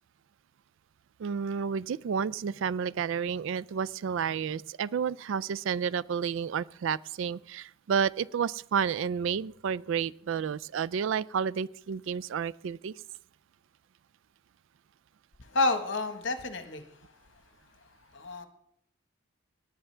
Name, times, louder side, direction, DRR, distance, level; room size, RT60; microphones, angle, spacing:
voice 1, 1.2-12.9, right 7 dB, 65° right, 21 dB, 0.3 m, -31 dB
voice 2, 15.4-16.8 18.1-18.5, left 2 dB, 60° left, 7 dB, 1.3 m, -29 dB
18.5 x 9.0 x 3.3 m, 0.71 s
head